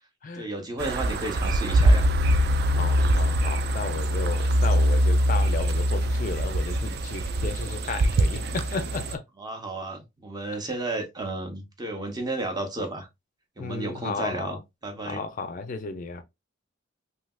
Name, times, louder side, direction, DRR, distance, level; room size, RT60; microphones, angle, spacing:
voice 1, 0.3-2.1 9.4-13.1 13.6-14.6 14.8-15.2, right 2 dB, 20° right, 0.7 m, -32 dB
sound 1, 0.8-9.1, equal, 55° right, 0.4 m, -23 dB
voice 2, 2.7-9.2 13.6-14.6 15.1-16.2, left 4 dB, 45° left, 0.4 m, -34 dB
3.3 x 2.7 x 2.2 m
head